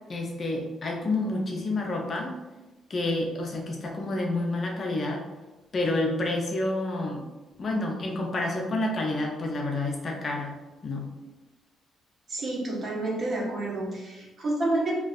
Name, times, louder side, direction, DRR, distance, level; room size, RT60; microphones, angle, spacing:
voice 1, 0.1-2.3 2.9-5.2 5.7-7.2 7.6-10.5 10.8-11.1, left 2 dB, 40° left, 0 dB, 0.5 m, -29 dB
voice 2, 12.3-14.9, right 2 dB, 50° right, -2 dB, 0.7 m, -29 dB
2.5 x 2.2 x 2.4 m, 1.1 s
cardioid pair, 90°, 0 cm